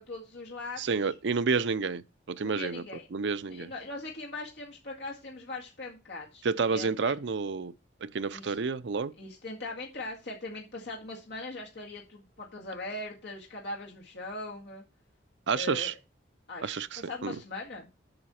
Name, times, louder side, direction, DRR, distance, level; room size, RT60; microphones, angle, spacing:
voice 1, 0.0-0.8 2.4-3.1 3.5-7.1 8.3-8.6 9.2-14.8 15.5-15.9 16.5-17.9, left 2 dB, 60° left, 1.9 m, -40 dB
voice 2, 0.8-2.8 3.1-3.7 6.4-7.7 8.0-9.1 15.5-15.9 16.6-17.4, right 5 dB, 70° right, 0.5 m, -30 dB
7.9 x 7.0 x 4.3 m
head